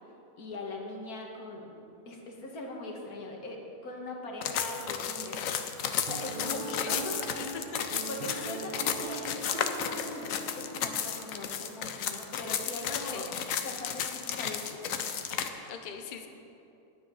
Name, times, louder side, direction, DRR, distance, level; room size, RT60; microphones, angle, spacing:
voice 1, 0.4-1.8 2.1-5.4 5.8-7.5 8.1-13.3 13.6-14.8 15.1-15.2 15.5-15.8, left 2 dB, 90° left, 1 dB, 1.9 m, -41 dB
sound 1, 4.1-8.7, left 3 dB, 50° right, 3.2 m, -50 dB
sound 2, 4.4-15.5, left 8 dB, 70° left, 1.0 m, -33 dB
Piano, 6.1-11.4, right 4 dB, 65° right, 0.4 m, -42 dB
voice 2, 6.4-7.2 7.5-8.6 12.9-13.3 15.7-16.3, left 6 dB, 45° left, 5 dB, 0.7 m, -41 dB
10.5 x 9.6 x 5.5 m, 2.8 s
omnidirectional pair, 1.5 m